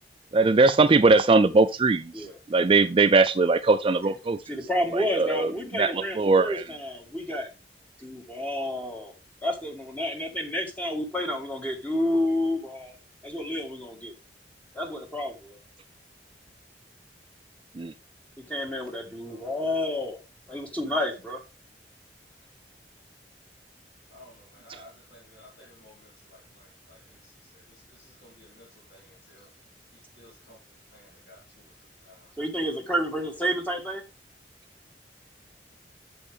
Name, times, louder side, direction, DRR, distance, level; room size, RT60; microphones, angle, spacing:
voice 1, 0.3-4.4 4.9-5.5 5.8-6.6 17.8-17.9, right 3 dB, 30° right, 0.4 m, -20 dB
voice 2, 4.5-7.5 8.0-9.1 9.4-12.9 13.2-14.1 14.7-15.6 18.5-20.2 20.5-21.4 32.4-34.0, left 1 dB, 10° left, 1.5 m, -30 dB
voice 3, 24.1-29.5 29.9-30.6 30.8-32.3, left 1 dB, 65° left, 3.4 m, -55 dB
8.4 x 7.1 x 3.4 m
head